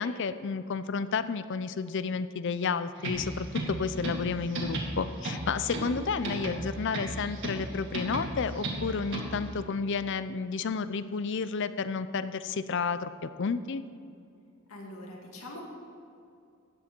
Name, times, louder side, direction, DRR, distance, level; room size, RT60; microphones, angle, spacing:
voice 1, 0.0-13.8, left 5 dB, 55° left, 13 dB, 0.5 m, -31 dB
sound 1, 3.0-9.5, right 1 dB, 60° right, 2.0 m, -35 dB
voice 2, 14.7-15.6, left 1 dB, 80° left, -1 dB, 2.4 m, -43 dB
13.5 x 9.7 x 4.5 m, 2.5 s
head